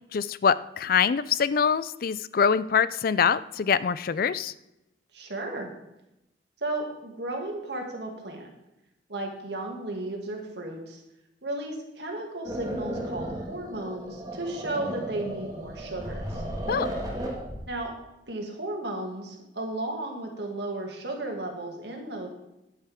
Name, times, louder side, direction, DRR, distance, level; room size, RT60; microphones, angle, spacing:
voice 1, 0.1-4.5 16.7-16.9, left 6 dB, 50° left, 17 dB, 0.4 m, -24 dB
voice 2, 5.1-5.7 6.6-8.5 9.1-11.0 11.4-16.4 17.7-17.9 18.3-22.3, right 2 dB, 65° right, 1 dB, 2.3 m, -34 dB
sound 1, 12.4-17.6, right 1 dB, 20° right, 2.0 m, -34 dB
10.0 x 9.9 x 3.6 m, 0.90 s
head